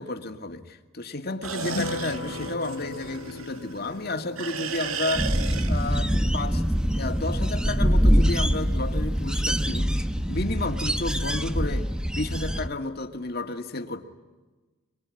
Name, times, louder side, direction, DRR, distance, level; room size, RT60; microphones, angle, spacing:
voice 1, 0.0-5.3 5.7-6.6 6.9-14.0, left 2 dB, 45° left, 6 dB, 2.2 m, -32 dB
sound 1, 1.4-4.0 4.4-6.2, right 6 dB, 80° right, 1.8 m, -34 dB
sound 2, 1.6-8.4 8.7-8.8 9.1-9.3, left 3 dB, 75° left, 0.9 m, -39 dB
sound 3, 5.1-12.7, equal, 5° right, 0.9 m, -24 dB
25.0 x 23.5 x 9.9 m, 1.2 s
head